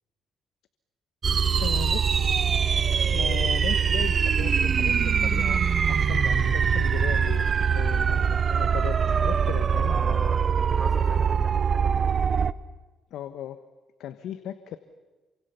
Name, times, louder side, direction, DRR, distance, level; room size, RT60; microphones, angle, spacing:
sound 1, 1.2-12.5, right 7 dB, 45° right, 0.9 m, -23 dB
voice 1, 1.6-2.5 2.9-10.2 13.1-13.6 14.0-14.8, left 10 dB, 80° left, 10 dB, 1.2 m, -37 dB
voice 2, 9.9-12.3, right 1 dB, 10° right, 7 dB, 3.8 m, -41 dB
28.0 x 25.0 x 7.0 m, 1.2 s
cardioid pair, 90°, 0 cm